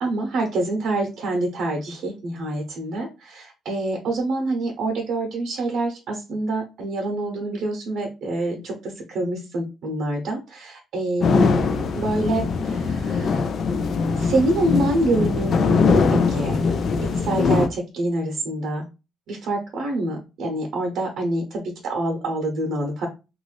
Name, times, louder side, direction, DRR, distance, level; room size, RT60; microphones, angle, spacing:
voice 1, 0.0-13.5 14.2-16.7 17.0-18.9 19.3-23.1, right 2 dB, 75° right, 1 dB, 0.7 m, -26 dB
sound 1, 11.2-17.7, left 5 dB, 60° left, 0.4 m, -21 dB
2.5 x 2.4 x 3.2 m, 0.29 s
cardioid pair, 90°, 0 cm